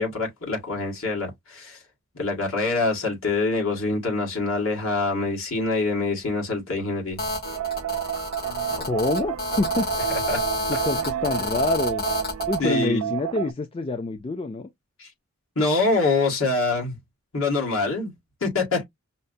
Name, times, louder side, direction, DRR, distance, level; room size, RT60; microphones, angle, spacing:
voice 1, 0.0-1.8 2.1-7.2 10.3-10.4 10.9-11.0 12.6-13.1 15.0-15.1 15.5-17.0 17.3-18.1 18.4-18.8, left 3 dB, 65° left, 1.7 m, -25 dB
Telephone, 7.2-12.6, left 2 dB, 45° left, 1.8 m, -29 dB
sound 1, 7.4-13.5, right 11 dB, 80° right, 0.3 m, -30 dB
voice 2, 8.8-9.9 10.7-12.1 12.5-14.7, left 3 dB, 25° left, 0.3 m, -27 dB
5.5 x 2.1 x 2.5 m
head